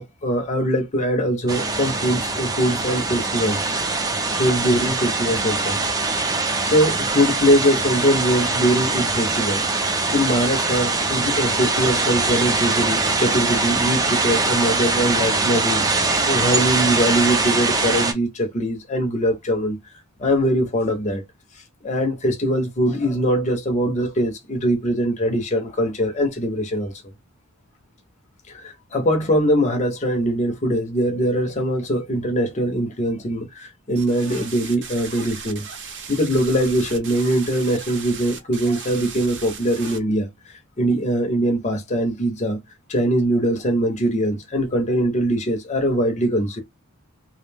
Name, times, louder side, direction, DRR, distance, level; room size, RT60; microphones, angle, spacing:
voice 1, 0.0-3.7 4.4-5.8 6.4-9.6 10.1-15.8 16.3-19.8 20.2-21.2 21.8-26.9 28.6-35.7 36.1-40.3 40.8-42.6 42.9-46.6, equal, 30° left, 0.6 m, -22 dB
sound 1, 1.5-18.1, right 3 dB, 15° right, 0.4 m, -22 dB
sound 2, 34.0-40.0, right 6 dB, 50° right, 0.7 m, -37 dB
2.4 x 2.1 x 3.3 m
head